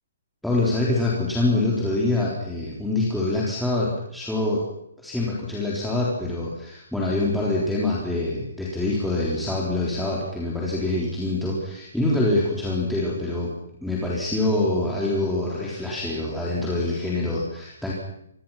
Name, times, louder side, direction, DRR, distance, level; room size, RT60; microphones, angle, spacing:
voice 1, 0.4-4.6 5.0-13.5 13.8-17.9, left 2 dB, ahead, -6 dB, 3.9 m, -25 dB
27.0 x 22.0 x 5.9 m, 0.77 s
hypercardioid pair, 165°, 0 cm